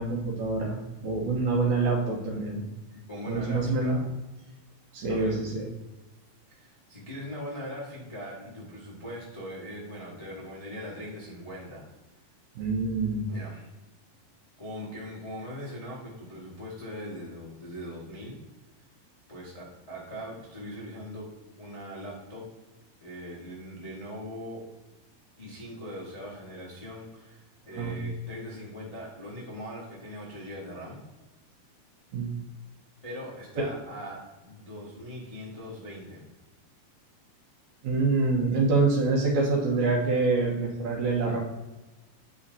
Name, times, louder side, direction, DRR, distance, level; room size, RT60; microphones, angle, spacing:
voice 1, 0.0-2.6 3.3-4.0 4.9-5.7 12.6-13.3 27.7-28.0 32.1-32.3 33.6-33.7 37.8-41.4, right 3 dB, 65° right, -1 dB, 2.2 m, -26 dB
voice 2, 3.1-4.1 5.1-5.4 6.5-11.8 13.3-13.7 14.6-18.4 19.3-21.3 21.6-22.4 23.0-24.6 25.4-31.0 33.0-36.2, equal, 25° left, -7 dB, 0.8 m, -40 dB
8.6 x 5.7 x 2.7 m, 1.1 s
omnidirectional pair, 4.2 m